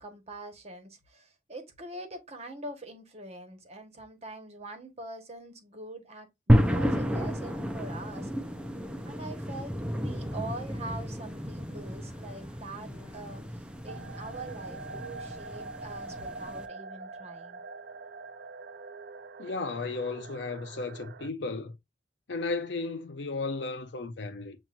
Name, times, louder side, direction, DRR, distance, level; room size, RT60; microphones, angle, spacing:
voice 1, 0.0-8.3 9.0-17.6, right 2 dB, 35° right, 1.3 m, -44 dB
sound 1, 6.5-16.7, equal, 5° right, 0.6 m, -31 dB
sound 2, 9.9-15.1, left 2 dB, 25° left, 1.3 m, -56 dB
sound 3, 13.9-21.3, right 3 dB, 60° right, 0.4 m, -44 dB
voice 2, 19.4-21.7 22.3-24.6, left 3 dB, 75° left, 0.6 m, -34 dB
7.3 x 2.9 x 2.5 m
head